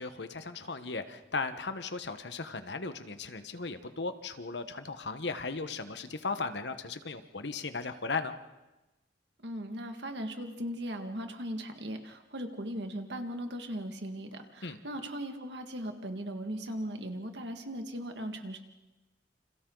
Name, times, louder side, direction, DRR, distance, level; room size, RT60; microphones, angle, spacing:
voice 1, 0.0-8.3 14.6-14.8, left 4 dB, 70° left, 10 dB, 1.3 m, -36 dB
voice 2, 9.4-18.6, equal, 70° right, 5 dB, 2.0 m, -38 dB
29.0 x 27.0 x 4.0 m, 1.1 s
head